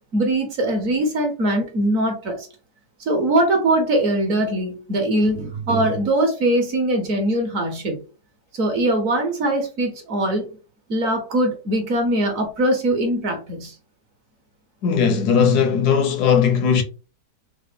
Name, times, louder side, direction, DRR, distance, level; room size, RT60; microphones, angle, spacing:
voice 1, 0.1-2.5 3.0-8.0 8.5-10.5 10.9-13.7, right 1 dB, 60° right, 1.2 m, -21 dB
voice 2, 14.8-16.8, left 7 dB, 75° left, 1.1 m, -18 dB
3.7 x 2.1 x 3.4 m
omnidirectional pair, 1.8 m